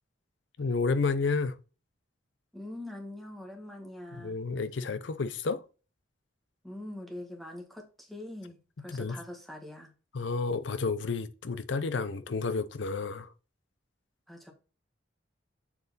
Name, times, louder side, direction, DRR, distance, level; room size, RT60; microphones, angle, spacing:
voice 1, 0.6-1.6 4.2-5.6 8.9-9.2 10.1-13.3, left 4 dB, 70° left, 0.6 m, -31 dB
voice 2, 2.5-4.4 6.6-9.9 14.3-14.5, left 1 dB, ahead, 1.4 m, -43 dB
7.2 x 3.9 x 4.1 m
head